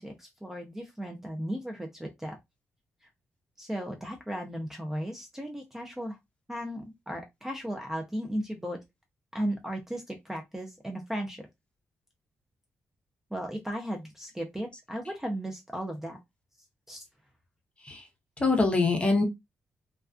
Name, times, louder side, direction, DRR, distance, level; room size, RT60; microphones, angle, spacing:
voice 1, 0.0-2.4 3.6-6.2 6.5-8.8 9.3-11.5 13.3-16.2 16.9-17.0, equal, 10° right, 0.4 m, -35 dB
voice 2, 18.4-19.2, left 3 dB, 25° left, 0.7 m, -24 dB
2.3 x 2.3 x 2.4 m
cardioid pair, 115°, 5 cm